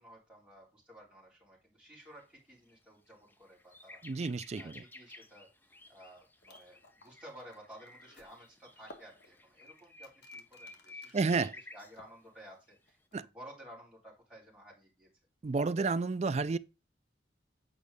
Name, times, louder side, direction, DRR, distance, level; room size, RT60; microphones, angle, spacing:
voice 1, 0.0-4.0 4.5-5.5 5.9-11.5 11.7-15.1, equal, 5° right, 3.6 m, -54 dB
sound 1, 2.1-2.2 2.7-2.8 3.1-11.9 12.7-12.9, left 2 dB, 10° left, 0.6 m, -54 dB
voice 2, 4.0-4.8 11.1-11.5 13.1-13.3 15.4-16.6, right 4 dB, 35° right, 0.3 m, -31 dB
sound 2, 6.4-11.3 11.7-12.5 12.9-13.2, left 2 dB, 60° left, 1.5 m, -58 dB
8.2 x 5.1 x 3.5 m
head